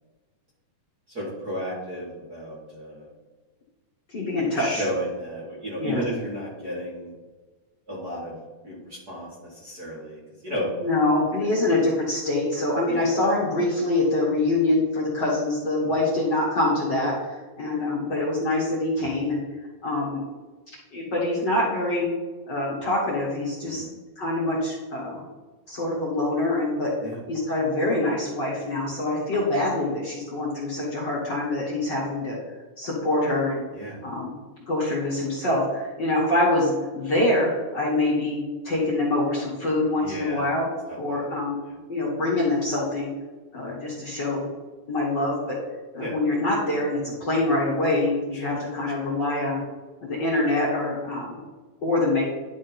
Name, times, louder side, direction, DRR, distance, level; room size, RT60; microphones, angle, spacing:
voice 1, 1.1-3.1 4.5-7.1 7.9-8.3 8.6-10.7 12.9-13.2 23.6-23.9 27.0-27.2 33.7-34.0 40.0-40.5 40.9-41.4 41.7-41.8 46.0-46.2 48.3-49.1, equal, 40° right, -6 dB, 1.8 m, -34 dB
voice 2, 4.1-4.8 5.8-6.0 10.8-19.4 19.8-20.2 20.7-22.1 22.5-23.9 24.2-25.2 25.7-26.9 27.3-32.4 32.8-33.6 34.0-34.4 34.7-38.4 38.6-40.7 41.0-41.6 41.9-43.1 43.5-44.5 44.9-45.5 45.9-49.6 50.0-51.4 51.8-52.2, left 2 dB, 40° left, -6 dB, 1.9 m, -25 dB
11.0 x 3.7 x 4.4 m, 1.3 s
omnidirectional pair, 3.5 m